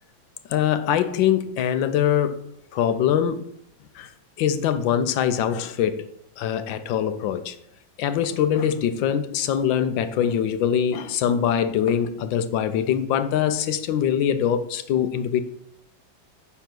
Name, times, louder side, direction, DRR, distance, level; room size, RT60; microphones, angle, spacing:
voice 1, 0.5-2.4 2.7-3.4 3.9-4.1 4.4-6.1 6.4-7.6 8.0-15.4, left 9 dB, 75° left, 11 dB, 1.3 m, -23 dB
9.9 x 3.5 x 5.9 m, 0.71 s
omnidirectional pair, 2.2 m